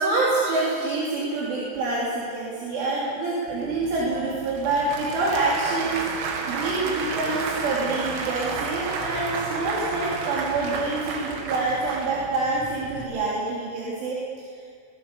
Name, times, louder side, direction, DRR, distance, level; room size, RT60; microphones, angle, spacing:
voice 1, 0.0-14.2, right 3 dB, 70° right, -6 dB, 5.5 m, -26 dB
Applause / Crowd, 3.5-13.1, right 4 dB, 85° right, 4.8 m, -32 dB
22.5 x 21.5 x 6.8 m, 2.1 s
omnidirectional pair, 5.9 m